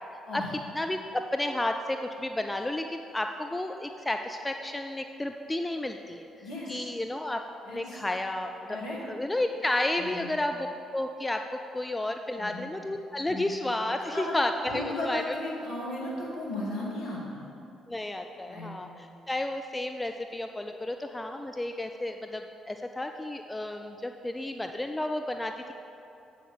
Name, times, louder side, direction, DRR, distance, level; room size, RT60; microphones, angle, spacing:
voice 1, 0.7-6.3 6.7-7.4 7.7-8.8 9.1-10.6 10.9-11.4 11.7-15.2 17.9-25.7, left 1 dB, 15° left, 5 dB, 0.4 m, -32 dB
voice 2, 6.4-6.9 7.6-8.0 8.7-9.0 10.0-10.3 12.4-12.7 13.3-13.5 14.1-14.4 14.7-17.5 18.5-18.7, left 1 dB, 65° left, -5 dB, 2.2 m, -36 dB
7.8 x 6.4 x 5.7 m, 2.8 s
figure-of-eight pair, 45°, 0 cm